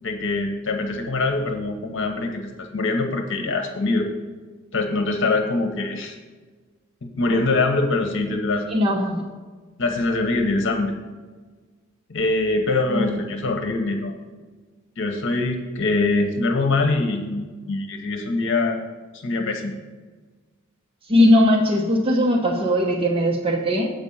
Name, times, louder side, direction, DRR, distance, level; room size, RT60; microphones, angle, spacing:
voice 1, 0.0-4.1 4.7-6.2 7.2-9.0 9.8-10.9 12.1-14.2 15.0-18.8 19.1-19.7, left 3 dB, 65° left, 4 dB, 1.0 m, -23 dB
voice 2, 8.7-9.2 12.9-13.3 21.1-23.9, left 1 dB, 25° right, -1 dB, 0.9 m, -19 dB
8.1 x 5.2 x 7.0 m, 1.4 s
head